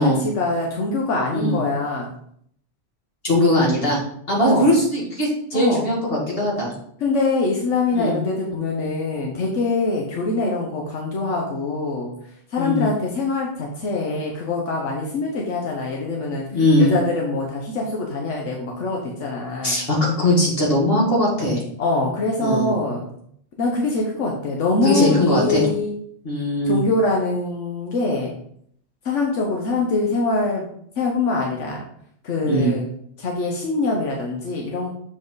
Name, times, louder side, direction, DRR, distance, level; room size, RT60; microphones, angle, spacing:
voice 1, 0.0-2.1 4.4-4.7 5.5-5.9 7.0-12.1 12.5-16.5 16.8-19.8 21.8-23.1 23.6-25.9 26.6-28.4 29.0-30.7 31.0-31.8 32.2-32.9 33.2-34.9, left 3 dB, 85° left, -1 dB, 1.3 m, -23 dB
voice 2, 3.2-4.0 4.3-6.7 7.9-8.2 12.6-12.9 16.5-16.9 19.6-21.6 22.4-22.7 24.8-25.7 26.2-26.8 32.4-32.7, left 1 dB, 55° left, -4 dB, 2.4 m, -20 dB
7.4 x 4.3 x 3.9 m, 0.68 s
omnidirectional pair, 1.2 m